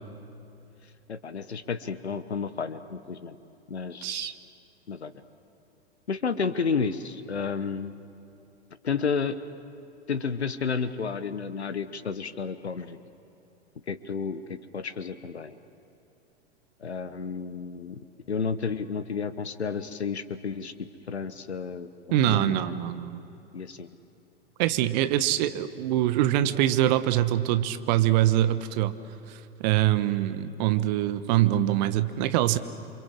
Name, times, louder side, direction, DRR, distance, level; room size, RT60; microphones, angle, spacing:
voice 1, 1.1-3.4 3.7-4.3 4.9-5.1 6.1-7.9 8.8-9.4 10.1-13.0 13.9-15.6 16.8-18.0 18.3-20.7 21.1-21.9 22.2-22.7 23.5-23.9, left 5 dB, 75° left, 13 dB, 1.1 m, -31 dB
voice 2, 4.0-4.3 22.1-23.2 24.6-29.0 29.3-32.6, right 13 dB, 40° right, 12 dB, 1.2 m, -24 dB
28.0 x 25.0 x 7.5 m, 2.9 s
figure-of-eight pair, 95°, 33 cm